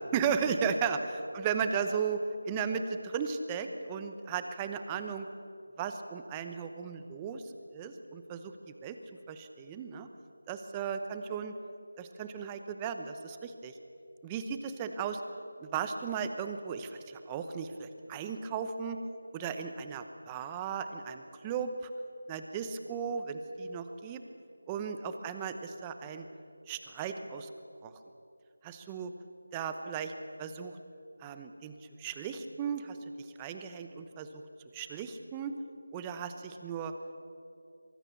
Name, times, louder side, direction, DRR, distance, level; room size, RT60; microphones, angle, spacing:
voice 1, 0.1-2.2 2.5-5.3 5.8-7.4 7.7-8.5 8.8-9.0 9.3-10.1 10.5-11.5 12.0-13.7 14.2-15.2 15.6-19.0 19.3-21.7 22.3-24.2 24.7-26.3 26.7-27.5 27.8-27.9 28.6-29.1 29.5-30.1 30.4-30.7 31.2-31.7 32.0-34.4 34.7-35.5 35.9-36.9, right 6 dB, 10° right, 8 dB, 0.9 m, -35 dB
24.0 x 23.0 x 7.0 m, 2.6 s
figure-of-eight pair, 175°, 0 cm